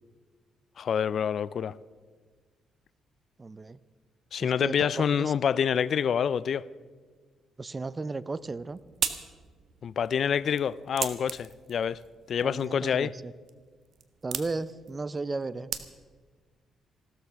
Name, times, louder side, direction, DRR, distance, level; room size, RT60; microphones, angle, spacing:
voice 1, 0.8-1.7 4.3-6.6 9.8-12.0 12.3-13.1, left 8 dB, 55° left, 0.4 m, -27 dB
voice 2, 3.4-3.8 4.4-5.3 7.6-8.8 12.4-13.3 14.2-15.7, right 3 dB, 25° right, 0.5 m, -35 dB
sound 1, 8.3-16.3, right 8 dB, 60° right, 1.1 m, -39 dB
16.0 x 13.0 x 5.8 m
cardioid pair, 90°, 0 cm